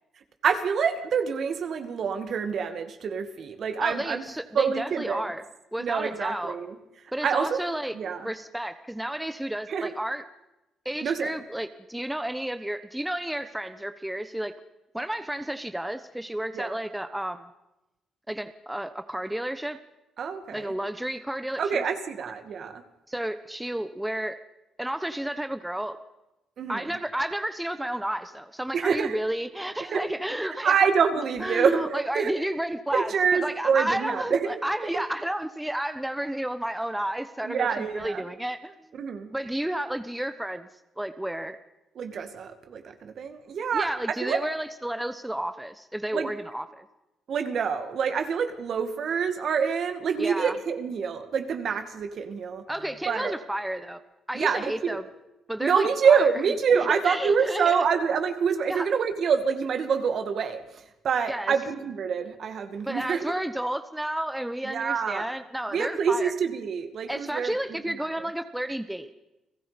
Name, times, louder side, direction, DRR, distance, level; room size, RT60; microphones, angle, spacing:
voice 1, 0.4-4.2 4.5-5.3 5.8-6.8 7.2-7.6 7.9-8.3 9.7-9.9 11.0-11.4 16.5-16.7 20.2-20.7 21.6-22.8 26.6-26.8 28.7-29.2 29.9-30.0 30.6-32.3 32.9-34.6 34.9-35.0 37.4-38.2 39.0-39.3 42.0-43.9 44.2-44.4 46.1-46.3 47.3-52.6 53.1-53.3 54.3-55.0 55.6-63.3 64.6-65.3 65.7-67.8, right 6 dB, 60° right, 8 dB, 2.2 m, -26 dB
voice 2, 3.8-5.4 5.7-6.6 7.1-10.2 10.8-14.5 14.9-17.5 18.3-19.8 20.5-21.8 23.1-24.4 24.8-26.0 26.7-30.8 31.4-38.9 39.3-40.7 41.0-41.6 43.7-46.9 50.2-50.6 52.7-54.0 54.3-55.0 55.5-56.2 56.7-57.8 58.7-58.9 61.3-61.5 62.8-66.3 67.1-69.1, right 1 dB, 5° right, 10 dB, 1.1 m, -31 dB
30.0 x 18.0 x 5.2 m, 0.95 s
cardioid pair, 90°, 0 cm